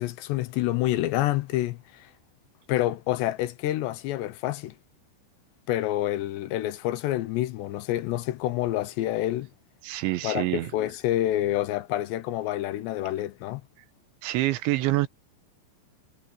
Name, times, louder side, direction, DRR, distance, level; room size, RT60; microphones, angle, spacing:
voice 1, 0.0-2.1 2.7-4.7 5.7-9.5 10.2-13.6, left 14 dB, 80° left, 2.8 m, -28 dB
voice 2, 9.8-10.7 14.2-15.1, right 17 dB, 80° right, 3.3 m, -26 dB
omnidirectional pair, 5.3 m